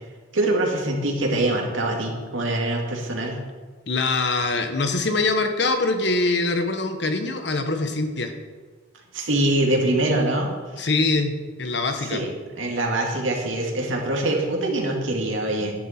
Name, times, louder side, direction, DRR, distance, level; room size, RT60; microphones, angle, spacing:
voice 1, 0.3-3.4 9.1-10.9 12.0-12.3 12.6-15.7, right 1 dB, 90° right, 0 dB, 2.2 m, -24 dB
voice 2, 3.9-8.3 10.8-11.3 11.6-12.2, left 3 dB, 60° left, 6 dB, 1.1 m, -23 dB
10.5 x 10.0 x 4.4 m, 1.4 s
head